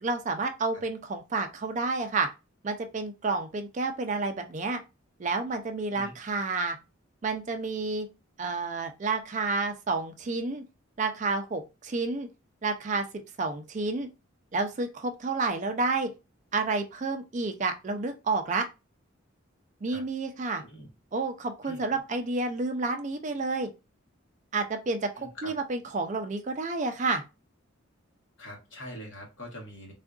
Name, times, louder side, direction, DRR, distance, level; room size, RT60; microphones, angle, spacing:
voice 1, 0.0-2.3 2.6-4.8 5.2-6.8 7.2-8.1 8.4-10.6 11.0-12.3 12.6-13.1 13.4-14.1 14.5-16.1 16.5-18.7 19.8-20.6 21.1-23.7 24.5-27.2, right 3 dB, 35° right, 6 dB, 0.3 m, -30 dB
voice 2, 20.5-20.9 21.6-21.8 25.2-25.5 28.4-29.9, equal, 65° left, -1 dB, 1.2 m, -43 dB
3.5 x 2.4 x 2.3 m, 0.27 s
head